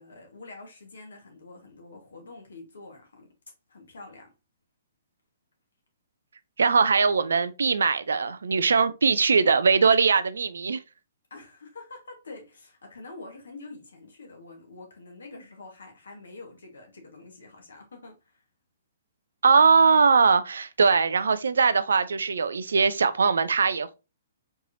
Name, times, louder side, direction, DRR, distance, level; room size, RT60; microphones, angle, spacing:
voice 1, 0.0-3.3 3.7-4.3 11.3-18.4, left 3 dB, 80° left, 1.2 m, -46 dB
voice 2, 6.6-10.8 19.4-23.9, right 5 dB, 80° right, 0.4 m, -21 dB
4.5 x 3.1 x 2.5 m
hypercardioid pair, 130°, 0 cm